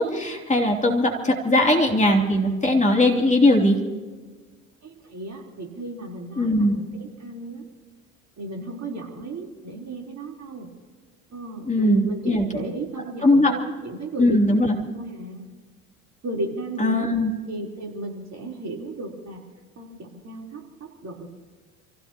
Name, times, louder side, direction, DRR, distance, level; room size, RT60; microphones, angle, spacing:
voice 1, 0.0-3.8 6.4-6.8 11.7-12.6 13.2-13.5 14.2-14.8 16.8-17.3, left 1 dB, 15° left, 0 dB, 3.1 m, -20 dB
voice 2, 4.8-7.7 8.4-10.7 11.3-15.5 16.2-17.1 17.5-19.4 19.8-21.3, right 2 dB, 40° right, -1 dB, 4.0 m, -35 dB
29.0 x 16.5 x 3.0 m, 1.4 s
figure-of-eight pair, 55°, 41 cm